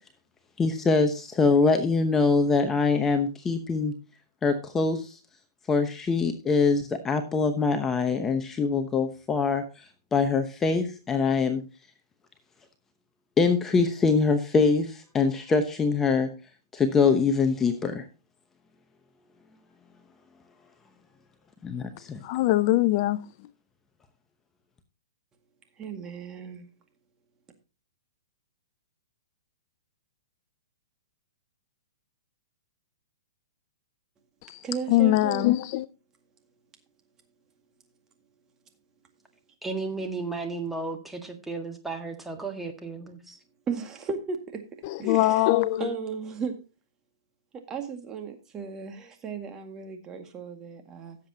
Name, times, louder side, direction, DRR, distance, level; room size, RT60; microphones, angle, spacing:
voice 1, 0.6-3.9 4.4-5.2 5.7-9.6 10.1-11.6 13.4-16.3 16.7-18.0 21.6-22.2, left 4 dB, 15° left, 0.9 m, -23 dB
voice 2, 22.2-23.2 34.5-34.6 34.9-35.8 45.1-45.8, left 16 dB, 45° left, 0.5 m, -22 dB
voice 3, 25.8-26.7 34.6-35.5 43.7-44.6 45.0-46.6 47.5-51.2, right 5 dB, 20° right, 1.9 m, -35 dB
voice 4, 39.6-43.4, right 3 dB, 5° right, 1.7 m, -34 dB
16.5 x 7.4 x 2.8 m
hypercardioid pair, 135°, 2 cm